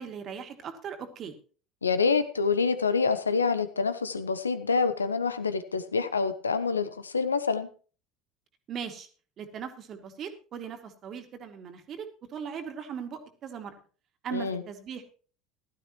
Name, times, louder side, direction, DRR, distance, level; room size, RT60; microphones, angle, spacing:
voice 1, 0.0-1.4 8.7-9.1 9.4-13.7 14.2-15.0, right 7 dB, 45° right, 6 dB, 2.3 m, -39 dB
voice 2, 1.8-7.7 14.3-14.6, left 5 dB, 90° left, 12 dB, 0.9 m, -27 dB
15.5 x 12.5 x 3.0 m, 0.38 s
figure-of-eight pair, 70°, 0 cm